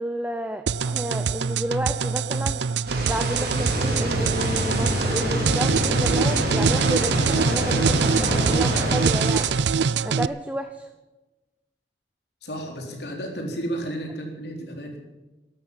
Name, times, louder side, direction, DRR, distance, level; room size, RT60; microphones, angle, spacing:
voice 1, 0.0-2.6 3.1-9.5 10.0-10.9, right 1 dB, 10° right, 7 dB, 0.7 m, -31 dB
sound 1, 0.7-10.3, right 6 dB, 75° right, 0.5 m, -24 dB
sound 2, 2.9-9.5, right 2 dB, 55° right, 4.5 m, -30 dB
sound 3, 3.5-9.1, left 1 dB, 45° left, 6.6 m, -28 dB
voice 2, 12.4-15.0, right 1 dB, 65° left, 2 dB, 3.7 m, -32 dB
13.0 x 11.5 x 9.3 m, 1.1 s
head